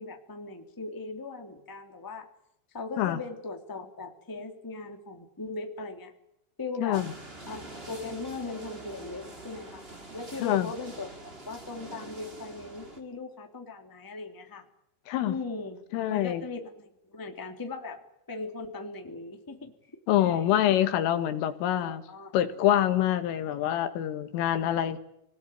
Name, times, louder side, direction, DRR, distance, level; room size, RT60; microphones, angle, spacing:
voice 1, 0.0-2.2 2.7-6.1 6.6-7.0 7.5-9.8 10.1-14.6 15.2-15.8 16.1-18.0 18.3-20.5 21.8-22.3, left 3 dB, 5° left, 4 dB, 1.5 m, -39 dB
voice 2, 6.8-7.1 10.4-10.7 15.1-15.4 15.9-16.4 20.1-22.0 22.3-25.0, left 12 dB, 90° left, 10 dB, 4.3 m, -26 dB
sound 1, 6.9-13.0, right 2 dB, 15° right, 2.2 m, -45 dB
27.0 x 19.5 x 9.4 m, 0.82 s
omnidirectional pair, 5.6 m